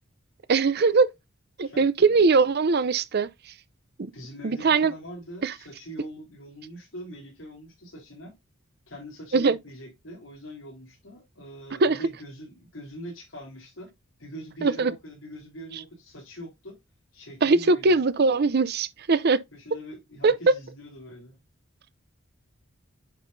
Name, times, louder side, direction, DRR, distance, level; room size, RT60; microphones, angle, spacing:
voice 1, 0.5-1.1 1.6-3.3 4.0-4.1 4.4-4.9 5.4-5.5 9.3-9.6 11.8-12.0 14.6-14.9 17.4-19.4 20.2-20.3, right 4 dB, 50° right, 0.6 m, -21 dB
voice 2, 1.6-2.1 4.1-8.3 8.9-13.9 14.2-16.7 17.1-18.0 19.5-21.4, right 1 dB, 75° left, 3.8 m, -42 dB
9.1 x 5.6 x 2.6 m
head